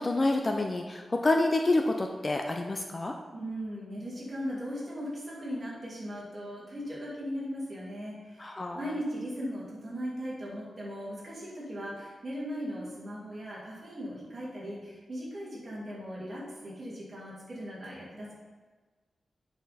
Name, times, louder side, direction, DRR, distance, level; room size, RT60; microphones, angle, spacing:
voice 1, 0.0-3.1 8.4-8.8, left 2 dB, 25° left, 3 dB, 0.4 m, -28 dB
voice 2, 3.3-18.3, equal, 30° right, -6 dB, 2.4 m, -38 dB
8.5 x 5.7 x 4.1 m, 1.4 s
wide cardioid pair, 175°, 0 cm